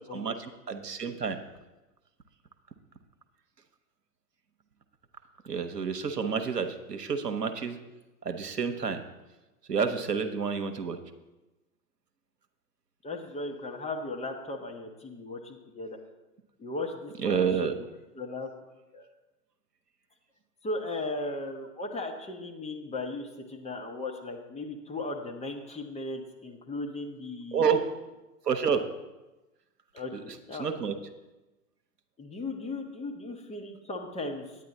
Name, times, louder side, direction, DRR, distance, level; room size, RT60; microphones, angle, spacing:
voice 1, 0.1-1.4 5.4-7.8 8.2-9.0 9.7-11.0 17.2-17.7 27.5-27.8 28.5-28.8 30.6-30.9, right 6 dB, 90° right, 7 dB, 0.9 m, -29 dB
voice 2, 13.0-16.0 16.6-17.9 18.1-18.5 18.9-19.1 20.6-27.7 29.9-30.7 32.2-34.5, left 2 dB, 15° left, 2 dB, 1.1 m, -37 dB
9.4 x 9.4 x 4.1 m, 1.1 s
figure-of-eight pair, 100°, 46 cm